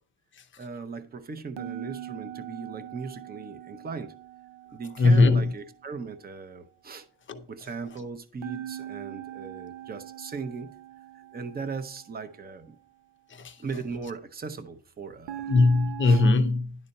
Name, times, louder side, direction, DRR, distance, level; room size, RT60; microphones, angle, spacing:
voice 1, 0.6-4.1 4.7-7.1 7.5-10.7 11.3-12.8 13.6-15.5 16.0-16.2, right 5 dB, 20° right, 0.6 m, -38 dB
sound 1, 1.6-5.7 8.4-12.6 15.3-16.3, right 12 dB, 80° right, 0.6 m, -41 dB
voice 2, 5.0-5.5 7.3-7.4 13.4-13.5 15.5-16.8, left 3 dB, 25° left, 0.6 m, -20 dB
11.0 x 4.1 x 5.3 m
cardioid pair, 170°, 48 cm